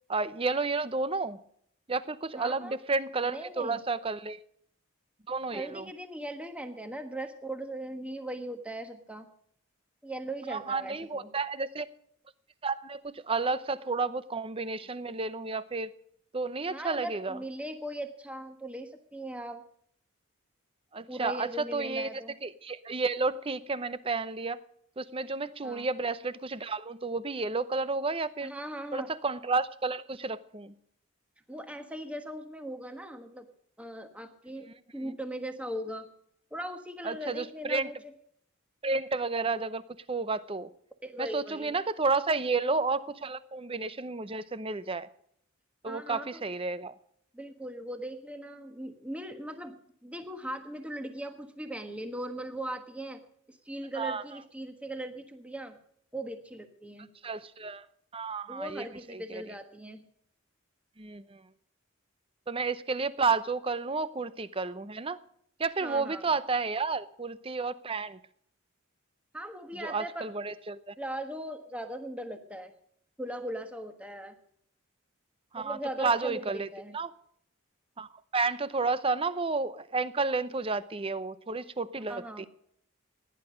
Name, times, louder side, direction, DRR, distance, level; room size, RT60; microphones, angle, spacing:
voice 1, 0.1-1.4 1.9-4.4 5.3-5.8 10.5-11.9 12.6-15.9 16.3-17.4 20.9-22.1 22.4-24.6 25.0-28.5 28.9-30.7 35.0-35.1 37.0-37.9 38.8-39.8 40.1-40.7 41.2-45.1 45.8-46.9 54.0-54.2 57.2-57.9 58.1-59.4 61.0-61.4 62.5-65.2 65.6-68.2 69.8-70.9 75.5-76.7 76.9-77.1 78.0-82.5, right 4 dB, 25° right, 15 dB, 0.7 m, -31 dB
voice 2, 2.3-2.8 3.2-3.8 5.5-9.3 10.0-11.3 16.7-19.6 21.1-22.3 25.6-25.9 28.4-29.1 31.5-33.5 33.8-36.1 36.5-38.0 41.0-41.8 45.9-46.5 47.3-49.8 50.0-53.2 53.5-55.8 56.1-57.1 58.5-60.0 65.8-66.3 69.3-70.3 71.0-72.7 73.2-74.4 75.5-77.0 82.1-82.5, right 1 dB, 5° right, 6 dB, 1.3 m, -39 dB
17.5 x 10.5 x 5.1 m, 0.68 s
head